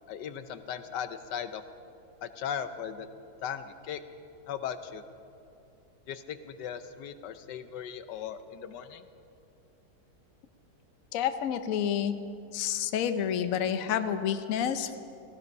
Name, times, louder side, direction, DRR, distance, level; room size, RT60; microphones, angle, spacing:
voice 1, 0.1-1.6 2.2-3.1 3.4-4.0 4.5-5.0 6.1-9.0, left 8 dB, 80° left, 11 dB, 1.3 m, -37 dB
voice 2, 11.1-12.1 12.5-15.0, left 9 dB, 60° left, 9 dB, 1.1 m, -29 dB
17.5 x 15.5 x 5.4 m, 2.6 s
omnidirectional pair, 1.8 m